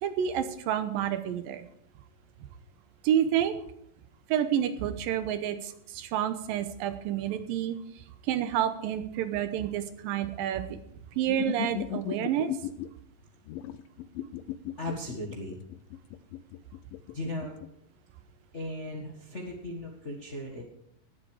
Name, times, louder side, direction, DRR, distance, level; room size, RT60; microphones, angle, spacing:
voice 1, 0.0-1.7 3.0-3.6 4.3-7.8 8.3-10.8 11.2-12.5, right 10 dB, 85° right, 10 dB, 2.6 m, -29 dB
sound 1, 11.3-12.9 13.5-17.7, left 12 dB, 85° left, 2.4 m, -37 dB
voice 2, 14.8-15.6 17.1-17.6 18.5-20.6, left 1 dB, 45° left, 0 dB, 0.9 m, -37 dB
18.5 x 7.9 x 4.8 m, 0.72 s
omnidirectional pair, 4.0 m